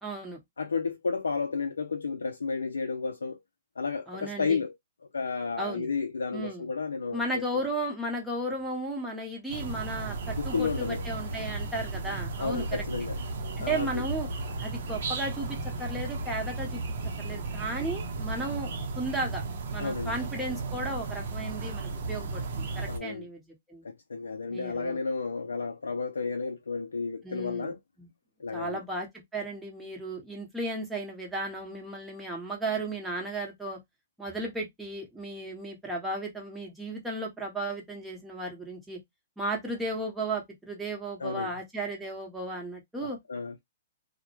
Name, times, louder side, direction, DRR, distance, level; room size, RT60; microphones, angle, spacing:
voice 1, 0.0-0.4 4.1-4.6 5.6-5.9 6.3-6.7 7.1-12.8 13.6-14.3 14.6-16.8 17.2-19.4 19.7-23.8 24.5-25.0 27.2-27.7 28.0-28.1 28.5-33.8 34.2-39.0 39.4-43.2, right 2 dB, 5° right, 0.9 m, -35 dB
voice 2, 0.6-3.4 3.8-4.7 5.1-7.6 10.4-11.0 12.4-13.2 13.6-14.1 19.8-20.1 22.9-23.3 23.8-27.8 28.4-28.8 41.2-41.5 43.0-43.5, left 4 dB, 85° left, 0.3 m, -32 dB
sound 1, 9.5-23.0, right 3 dB, 60° right, 0.6 m, -35 dB
2.1 x 2.0 x 2.9 m
hypercardioid pair, 125°, 0 cm